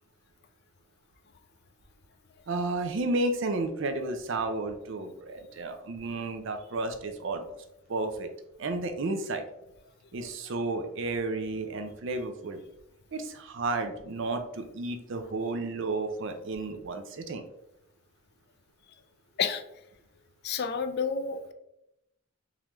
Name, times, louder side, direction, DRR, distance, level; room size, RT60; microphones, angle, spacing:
voice 1, 2.5-7.6 7.9-8.3 8.6-9.4 10.1-12.6 13.1-17.4, right 2 dB, 60° right, 7 dB, 0.5 m, -32 dB
voice 2, 20.4-21.5, left 6 dB, 50° left, 9 dB, 0.4 m, -30 dB
3.6 x 3.2 x 3.0 m, 0.84 s
head